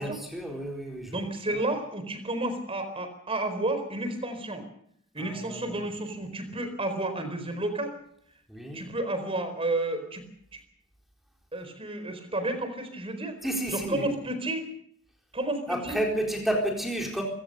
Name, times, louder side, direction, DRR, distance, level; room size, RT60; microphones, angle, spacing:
voice 1, 0.0-1.2 1.5-1.6 5.2-5.8 8.5-8.8 13.4-14.2 15.7-17.2, right 1 dB, ahead, 1 dB, 4.1 m, -31 dB
voice 2, 1.0-4.6 5.1-8.0 8.7-10.2 10.5-10.6 11.5-13.4 13.7-14.6 15.3-16.0, right 2 dB, 25° right, 9 dB, 4.3 m, -31 dB
24.0 x 17.0 x 6.7 m, 0.67 s
head